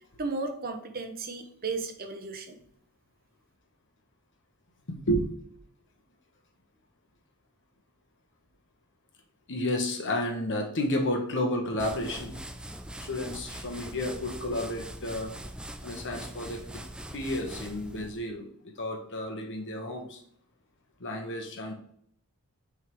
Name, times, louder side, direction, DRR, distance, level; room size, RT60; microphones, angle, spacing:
voice 1, 0.2-2.6, right 3 dB, 45° right, 6 dB, 0.8 m, -34 dB
voice 2, 9.5-12.4 13.0-15.3 15.8-16.8 17.1-18.4 18.8-20.2 21.0-21.7, left 1 dB, 55° left, 3 dB, 1.1 m, -31 dB
sound 1, 11.8-18.3, right 1 dB, 5° right, 0.3 m, -42 dB
9.4 x 3.6 x 3.1 m, 0.67 s
head